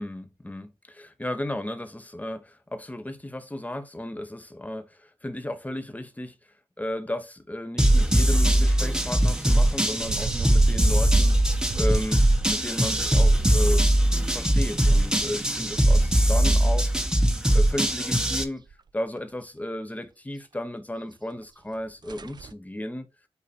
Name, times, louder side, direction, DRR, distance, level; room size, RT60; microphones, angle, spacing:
voice 1, 0.0-6.4 6.8-11.4 11.7-12.2 12.5-16.9 17.5-18.6 18.9-23.1, left 1 dB, 15° left, 1.1 m, -34 dB
sound 1, 7.8-18.4, right 1 dB, 5° right, 1.1 m, -21 dB
sound 2, 10.0-17.2 17.5-18.4 18.7-18.8 19.2-19.3 21.3-21.4 21.7-21.8 22.0-22.5, right 5 dB, 45° right, 0.4 m, -35 dB
8.2 x 2.9 x 4.3 m
cardioid pair, 50°, 10 cm